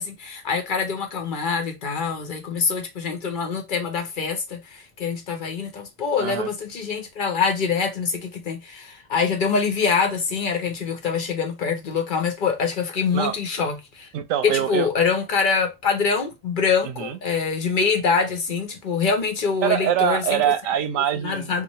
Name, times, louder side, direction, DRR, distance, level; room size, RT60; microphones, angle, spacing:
voice 1, 0.0-14.1 14.4-20.4 21.2-21.6, left 5 dB, 45° left, 0.9 m, -24 dB
voice 2, 6.2-6.5 13.1-13.4 14.1-14.9 16.8-17.2 19.6-21.6, right 10 dB, 90° right, 1.0 m, -24 dB
3.1 x 2.2 x 4.0 m
omnidirectional pair, 1.3 m